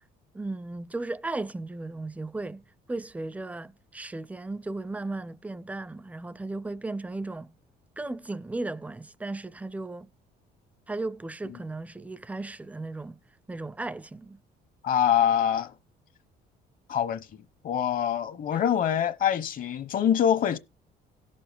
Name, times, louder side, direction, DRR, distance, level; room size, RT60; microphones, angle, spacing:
voice 1, 0.3-2.6 2.9-7.5 8.0-10.1 10.9-13.2 13.5-14.4, right 2 dB, 10° right, 0.4 m, -35 dB
voice 2, 14.8-15.7 16.9-20.6, left 9 dB, 55° left, 1.0 m, -25 dB
17.0 x 7.0 x 3.5 m
cardioid pair, 110°, 17 cm